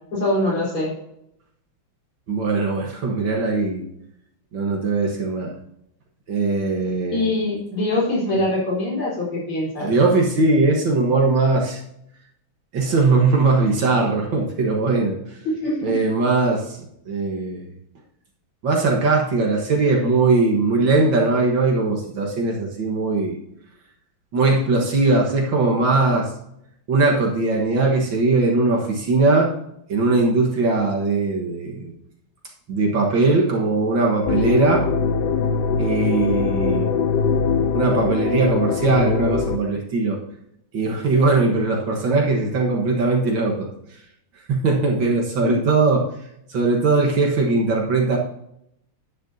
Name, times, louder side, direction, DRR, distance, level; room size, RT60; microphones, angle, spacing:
voice 1, 0.1-0.9 7.1-9.9 15.4-15.9 45.4-45.6, left 1 dB, 90° left, -5 dB, 5.0 m, -23 dB
voice 2, 2.3-3.9 4.5-5.5 6.3-7.3 9.8-11.8 12.7-15.2 15.8-16.8 17.1-17.7 18.6-23.4 24.3-26.3 26.9-29.5 29.9-31.9 32.7-34.9 35.8-36.9 37.7-40.2 40.7-43.7 44.5-46.1 46.5-48.2, right 3 dB, 65° right, 0 dB, 2.1 m, -20 dB
sound 1, 34.3-39.6, left 5 dB, 65° left, 1.1 m, -22 dB
10.5 x 9.8 x 2.8 m, 0.77 s
omnidirectional pair, 2.3 m